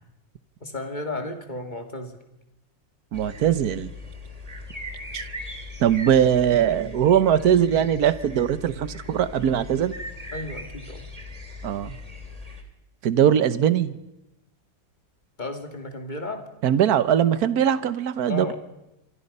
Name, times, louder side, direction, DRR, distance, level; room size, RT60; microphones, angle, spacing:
voice 1, 0.6-2.2 10.3-11.1 15.4-16.4 18.3-18.6, left 2 dB, 25° left, 5 dB, 2.6 m, -33 dB
sound 1, 3.1-12.6, left 2 dB, 20° right, 2.3 m, -39 dB
voice 2, 3.1-3.9 5.1-5.2 5.8-9.9 11.6-12.0 13.0-13.9 16.6-18.5, right 9 dB, 60° right, 14 dB, 1.5 m, -21 dB
27.0 x 24.5 x 5.5 m, 0.91 s
omnidirectional pair, 1.9 m